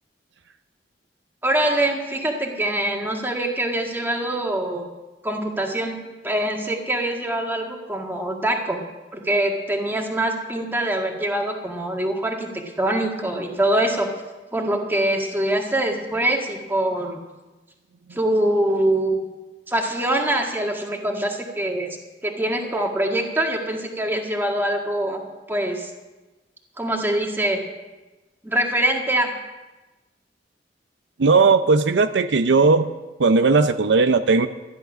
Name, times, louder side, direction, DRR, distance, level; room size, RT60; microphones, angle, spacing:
voice 1, 1.4-4.9 5.2-6.0 6.2-8.8 9.1-12.5 12.8-14.1 14.5-17.2 18.1-19.2 19.7-21.9 22.2-25.9 26.8-27.6 28.4-29.3, right 1 dB, 10° right, 1 dB, 1.7 m, -24 dB
voice 2, 31.2-32.9 33.2-34.5, right 4 dB, 85° right, 10 dB, 0.5 m, -17 dB
13.0 x 10.5 x 6.1 m, 1.1 s
head